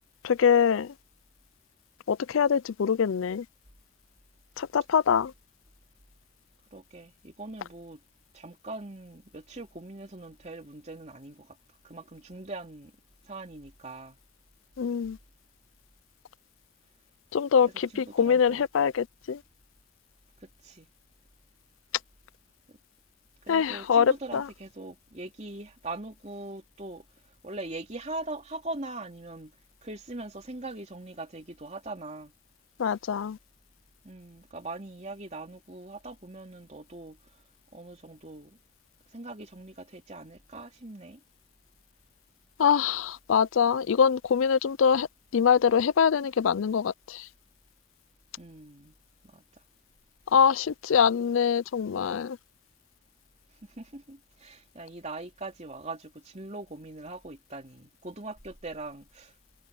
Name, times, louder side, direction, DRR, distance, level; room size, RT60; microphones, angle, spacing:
voice 1, 0.2-0.9 2.1-3.4 4.6-5.3 14.8-15.2 17.3-19.4 23.5-24.5 32.8-33.4 42.6-45.1 45.3-47.3 50.3-52.4, left 7 dB, 75° left, 0.4 m, -24 dB
voice 2, 6.7-8.0 8.3-11.6 11.8-12.9 13.2-14.2 17.6-18.7 20.4-20.9 22.7-22.8 23.4-27.0 27.4-29.5 29.8-32.3 34.0-37.2 37.7-38.6 39.1-41.2 48.4-48.9 49.2-49.4 53.6-59.3, right 2 dB, 35° right, 3.3 m, -41 dB
head